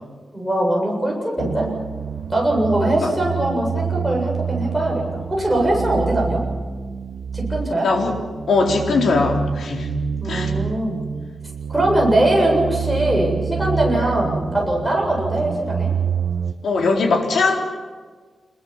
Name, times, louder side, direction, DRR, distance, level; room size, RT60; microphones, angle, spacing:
voice 1, 0.3-1.7 2.3-6.4 7.3-7.9 10.2-11.0 11.7-15.9, right 1 dB, ahead, -2 dB, 7.6 m, -21 dB
sound 1, 1.4-16.5, right 6 dB, 60° right, 1.3 m, -27 dB
voice 2, 8.5-9.9 10.3-10.5 13.9-14.1 16.6-17.6, left 3 dB, 75° left, 1 dB, 4.2 m, -20 dB
27.5 x 22.0 x 7.4 m, 1.5 s
wide cardioid pair, 170°, 0 cm